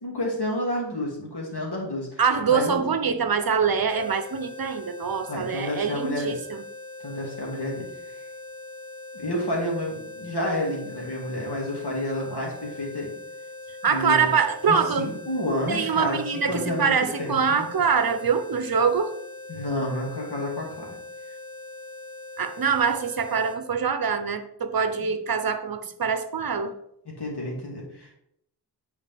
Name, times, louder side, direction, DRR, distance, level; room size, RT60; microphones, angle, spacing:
voice 1, 0.0-2.2 2.5-2.8 5.3-6.4 7.0-8.2 9.1-13.1 13.8-14.3 14.7-17.7 19.5-21.0 25.0-25.1 27.0-28.1, left 1 dB, 70° left, 2.4 m, -30 dB
voice 2, 2.2-6.6 13.8-15.1 15.7-19.1 22.4-26.7, right 6 dB, 60° right, 0.8 m, -24 dB
sound 1, 3.9-23.6, left 2 dB, 45° left, 1.6 m, -41 dB
9.1 x 4.8 x 3.5 m
wide cardioid pair, 75°, 41 cm